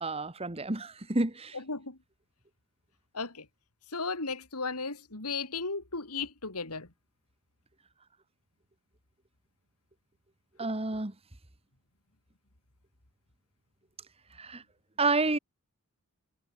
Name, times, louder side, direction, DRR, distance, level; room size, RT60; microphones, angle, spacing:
voice 1, 0.0-1.5 10.6-11.1 14.4-14.6 15.0-15.4, right 3 dB, 25° right, 1.5 m, -29 dB
voice 2, 1.5-2.0 3.1-3.5 3.9-6.9, left 4 dB, 85° left, 3.5 m, -35 dB
head